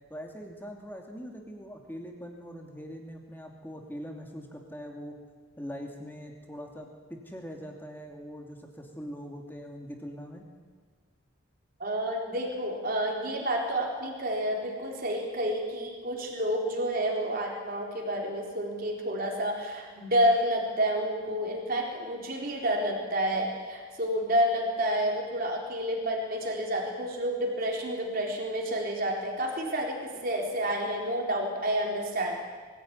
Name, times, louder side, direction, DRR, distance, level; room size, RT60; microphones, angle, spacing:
voice 1, 0.1-5.2 5.6-10.5, equal, 10° left, 2 dB, 2.7 m, -42 dB
voice 2, 11.8-32.3, equal, 45° right, 0 dB, 4.0 m, -29 dB
22.5 x 16.0 x 9.7 m, 1.5 s
head